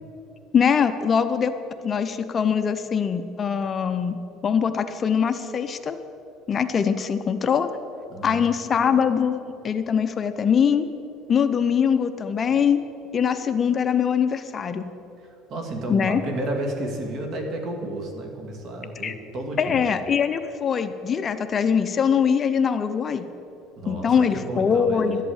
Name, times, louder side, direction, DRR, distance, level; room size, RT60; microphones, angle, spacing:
voice 1, 0.5-1.5 1.8-4.2 4.4-6.0 6.5-7.7 8.2-10.9 11.3-12.8 13.1-14.8 15.9-16.2 19.0-19.1 19.6-23.3 23.9-25.2, left 7 dB, 35° left, 10 dB, 0.6 m, -22 dB
voice 2, 8.1-8.5 15.2-19.8 23.8-25.2, right 1 dB, 50° right, 3 dB, 2.3 m, -32 dB
12.0 x 8.3 x 8.8 m, 2.8 s
cardioid pair, 120°, 0 cm